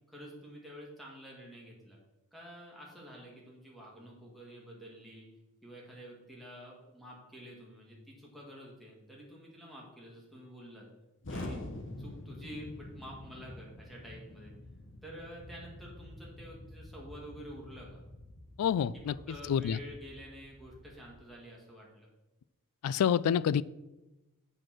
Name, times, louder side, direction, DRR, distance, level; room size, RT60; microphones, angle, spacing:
voice 1, 0.1-2.0 2.3-5.3 5.6-10.9 11.3-11.6 12.0-14.5 15.0-18.0 19.0-22.1, equal, ahead, 2.2 m, -49 dB
Explosion, 11.2-21.2, left 1 dB, 55° left, 1.1 m, -47 dB
voice 2, 18.6-19.1 19.5-19.8 22.8-23.6, left 8 dB, 80° left, 0.3 m, -27 dB
7.5 x 5.1 x 6.2 m
head